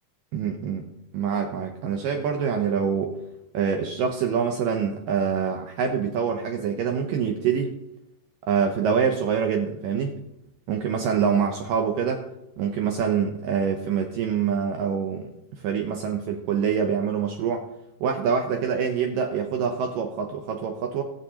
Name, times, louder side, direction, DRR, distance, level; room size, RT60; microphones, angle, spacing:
voice 1, 0.3-0.8 1.1-3.2 3.5-7.7 8.5-10.1 10.7-12.2 12.6-17.6 18.0-21.0, right 7 dB, 85° right, 3 dB, 1.9 m, -25 dB
18.5 x 8.3 x 2.8 m, 0.85 s
omnidirectional pair, 4.9 m